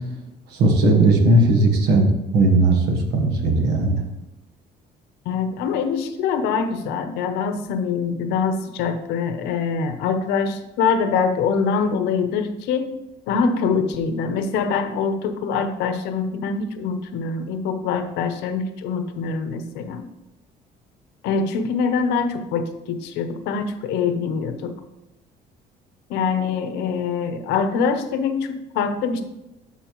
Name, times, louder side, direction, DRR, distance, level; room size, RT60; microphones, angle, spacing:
voice 1, 0.6-2.1 2.3-4.0, right 2 dB, 85° right, 4 dB, 1.3 m, -17 dB
voice 2, 5.3-12.9 13.3-20.0 21.2-24.7 26.1-29.2, left 5 dB, 90° left, 9 dB, 0.7 m, -24 dB
11.0 x 4.3 x 3.0 m, 0.96 s
cardioid pair, 110°, 17 cm